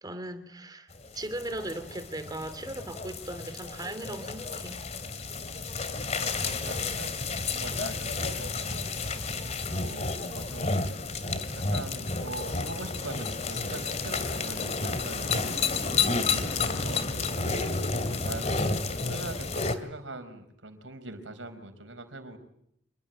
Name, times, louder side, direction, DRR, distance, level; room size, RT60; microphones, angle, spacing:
voice 1, 0.0-4.8 10.1-10.4 15.9-16.1, right 1 dB, 20° right, 2.9 m, -38 dB
sound 1, 0.9-19.8, left 4 dB, 35° left, 2.4 m, -31 dB
voice 2, 6.0-8.9 9.7-11.1 11.5-15.6 16.5-18.8 19.1-22.4, right 2 dB, 90° right, 4.7 m, -42 dB
27.0 x 21.5 x 9.4 m
head